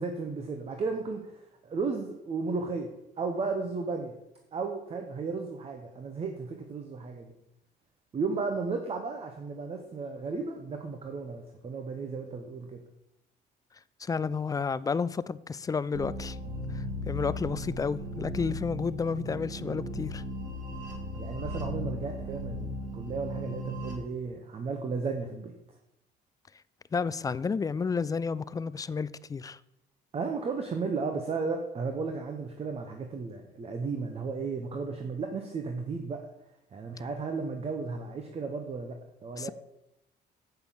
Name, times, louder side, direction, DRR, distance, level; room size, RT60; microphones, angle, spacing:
voice 1, 0.0-4.1 4.5-7.3 8.1-12.8 21.1-25.5 30.1-36.2 36.7-39.5, right 4 dB, 35° right, 1.1 m, -34 dB
voice 2, 14.0-16.4 16.7-20.2 26.9-29.6 39.4-39.5, left 5 dB, 20° left, 0.4 m, -31 dB
sound 1, 15.9-23.9, equal, 50° right, 2.4 m, -36 dB
8.0 x 5.7 x 7.1 m
cardioid pair, 110°, 17 cm